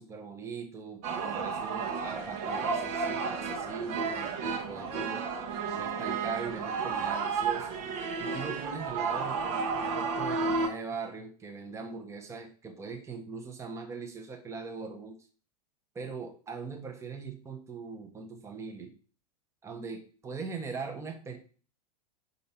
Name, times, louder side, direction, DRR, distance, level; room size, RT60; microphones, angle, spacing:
voice 1, 0.0-5.3 5.7-7.8 8.2-15.2 15.9-18.9 19.6-21.4, right 5 dB, 15° right, 5 dB, 1.0 m, -40 dB
sound 1, 1.0-10.7, right 5 dB, 45° right, 1.2 m, -32 dB
5.5 x 4.1 x 5.5 m, 0.40 s
figure-of-eight pair, 95°, 20 cm